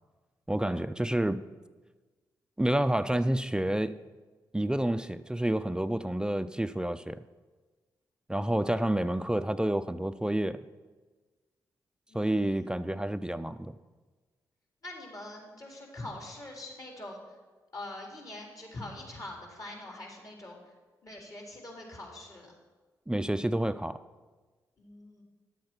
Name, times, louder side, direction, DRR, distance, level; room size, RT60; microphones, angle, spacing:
voice 1, 0.5-1.4 2.6-4.0 4.5-7.2 8.3-10.6 12.1-13.7 23.1-24.0, right 1 dB, 10° right, 12 dB, 0.4 m, -29 dB
voice 2, 12.1-12.6 14.8-17.4 17.7-20.6 21.0-22.5 24.8-25.2, left 2 dB, 45° left, 0 dB, 3.8 m, -44 dB
11.0 x 7.6 x 5.9 m, 1.3 s
supercardioid pair, 45°, 8 cm